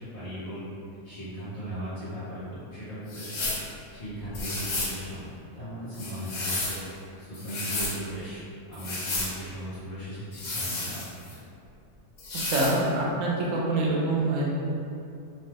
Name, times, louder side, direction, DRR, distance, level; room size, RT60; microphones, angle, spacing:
voice 1, 0.1-0.6 1.0-3.5 3.9-5.3 5.5-6.8 7.2-8.4 8.7-11.4, equal, 35° left, -15 dB, 0.7 m, -37 dB
sound 1, 3.1-3.7 4.3-5.0 5.9-6.8 7.3-8.0 8.7-9.3 10.3-11.3 12.2-12.8, left 2 dB, 80° left, 1.1 m, -32 dB
voice 2, 12.4-14.5, right 2 dB, 90° right, -4 dB, 1.0 m, -25 dB
2.9 x 2.1 x 3.3 m, 2.6 s
omnidirectional pair, 1.3 m